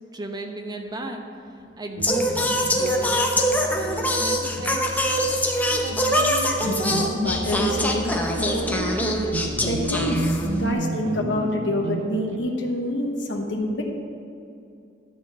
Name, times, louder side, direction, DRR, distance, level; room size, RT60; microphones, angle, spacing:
voice 1, 0.1-1.2 1.6-5.2, right 1 dB, 25° right, 3 dB, 0.8 m, -35 dB
Singing, 2.0-10.7, equal, 10° left, 0.8 m, -24 dB
sound 1, 2.0-12.4, right 2 dB, 75° right, 0.5 m, -32 dB
voice 2, 6.6-8.7 9.6-13.8, left 1 dB, 80° left, 1 dB, 1.0 m, -27 dB
12.0 x 4.4 x 7.2 m, 2.5 s
head